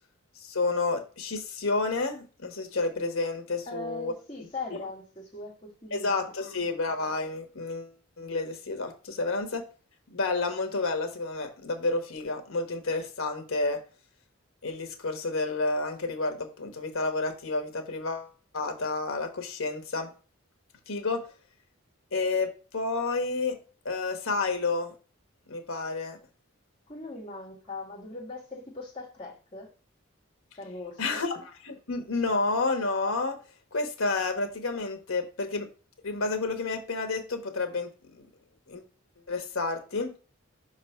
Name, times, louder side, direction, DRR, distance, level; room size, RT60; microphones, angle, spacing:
voice 1, 0.4-4.1 5.9-9.6 10.1-13.8 14.6-20.1 20.9-21.3 22.1-23.6 23.8-24.9 25.5-26.2 31.0-33.4 33.7-35.7 36.0-37.9 38.2-38.3 38.7-38.8 39.3-40.1, left 3 dB, 75° left, 1.3 m, -30 dB
voice 2, 3.7-6.1 6.4-6.5 26.9-29.7 30.6-31.2, left 2 dB, 25° left, 2.4 m, -40 dB
5.7 x 3.9 x 5.6 m
head